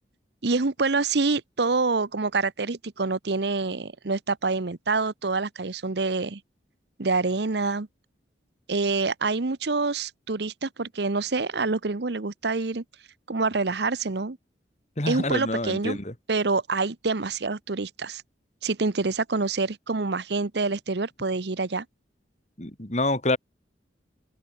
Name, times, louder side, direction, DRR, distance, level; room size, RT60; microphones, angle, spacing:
voice 1, 0.4-6.4 7.0-7.9 8.7-12.8 13.3-14.4 15.1-16.0 16.3-18.2 18.6-21.8, right 3 dB, 65° right, 0.9 m, -26 dB
voice 2, 15.0-16.1 22.6-23.4, left 2 dB, 40° left, 2.9 m, -27 dB
open air
head